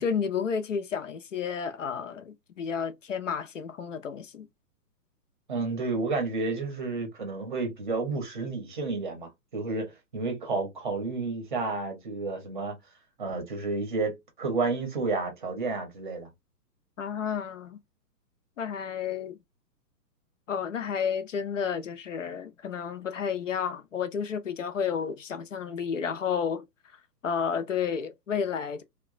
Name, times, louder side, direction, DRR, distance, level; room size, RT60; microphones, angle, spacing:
voice 1, 0.0-4.5 17.0-17.8 18.6-19.4 20.5-26.6 27.2-28.8, left 7 dB, 50° left, 0.5 m, -31 dB
voice 2, 5.5-12.8 13.2-16.3, right 3 dB, 30° right, 0.7 m, -31 dB
2.9 x 2.1 x 2.4 m
hypercardioid pair, 170°, 50 cm